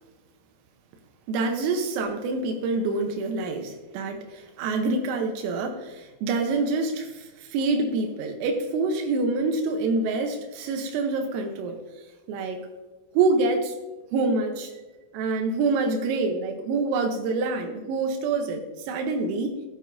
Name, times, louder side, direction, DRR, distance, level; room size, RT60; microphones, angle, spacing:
voice 1, 1.3-11.8 12.3-12.7 13.1-13.7 14.1-14.7 15.1-19.6, right 3 dB, 90° right, 3 dB, 3.7 m, -26 dB
15.0 x 11.5 x 2.7 m, 1.2 s
omnidirectional pair, 5.8 m